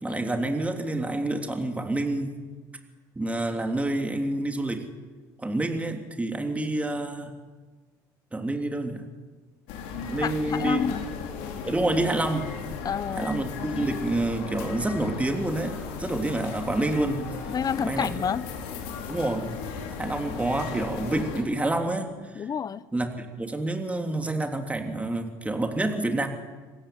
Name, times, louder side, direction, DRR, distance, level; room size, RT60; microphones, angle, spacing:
voice 1, 0.0-2.4 3.1-4.8 5.4-7.3 8.3-9.0 9.9-10.8 11.6-12.5 13.2-17.3 17.8-18.1 19.1-19.6 20.0-22.5 22.9-26.3, right 2 dB, 15° right, 3.2 m, -28 dB
sound 1, 9.7-21.4, left 6 dB, 75° left, 4.0 m, -36 dB
voice 2, 10.2-11.0 12.8-13.3 17.5-18.5 22.3-22.9, left 7 dB, 40° left, 1.0 m, -29 dB
26.5 x 15.5 x 9.4 m
hypercardioid pair, 75°, 10 cm